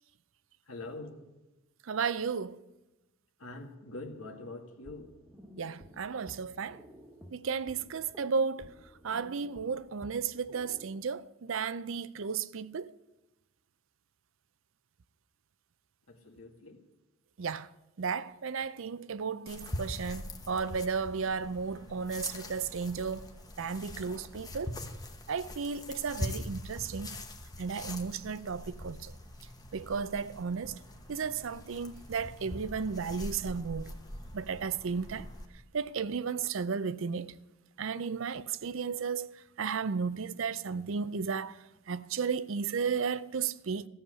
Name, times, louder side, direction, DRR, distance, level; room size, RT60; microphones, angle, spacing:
voice 1, 0.7-1.2 3.4-5.1 16.1-16.8, left 2 dB, 90° left, 1.9 m, -44 dB
voice 2, 1.9-2.6 5.6-6.8 7.3-8.7 9.0-12.9 17.4-17.7 18.0-23.3 23.6-24.7 25.3-27.1 27.6-29.1 29.7-30.7 31.1-33.9 34.3-35.3 35.7-37.3 37.8-39.3 39.6-41.6 41.9-43.9, right 5 dB, 65° right, 0.5 m, -34 dB
sound 1, 4.8-11.0, equal, 5° right, 1.3 m, -54 dB
sound 2, 19.5-35.5, left 1 dB, 20° left, 1.0 m, -43 dB
14.5 x 7.2 x 9.9 m
head